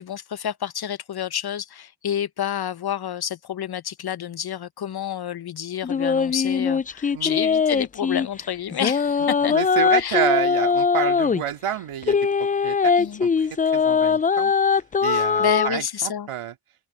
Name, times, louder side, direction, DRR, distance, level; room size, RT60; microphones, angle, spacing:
voice 1, 0.0-9.5 10.0-10.2 13.0-13.2 15.1-16.3, left 9 dB, 50° left, 0.9 m, -29 dB
sound 1, 5.8-8.3 8.7-11.4 12.0-15.7, left 5 dB, 20° left, 0.3 m, -21 dB
voice 2, 9.5-12.9 13.2-16.5, right 10 dB, 85° right, 2.3 m, -29 dB
open air
cardioid pair, 50°, 49 cm